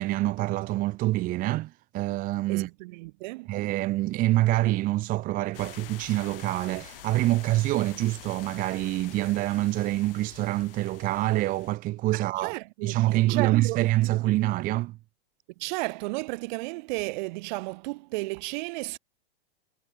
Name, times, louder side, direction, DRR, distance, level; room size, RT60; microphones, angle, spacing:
voice 1, 0.0-2.7 3.5-12.5 12.8-15.0, right 17 dB, 25° right, 0.8 m, -26 dB
voice 2, 2.5-3.5 12.1-14.1 15.6-19.0, right 24 dB, 50° right, 1.6 m, -34 dB
sound 1, 5.5-11.8, left 15 dB, 65° left, 7.9 m, -47 dB
hypercardioid pair, 135°, 31 cm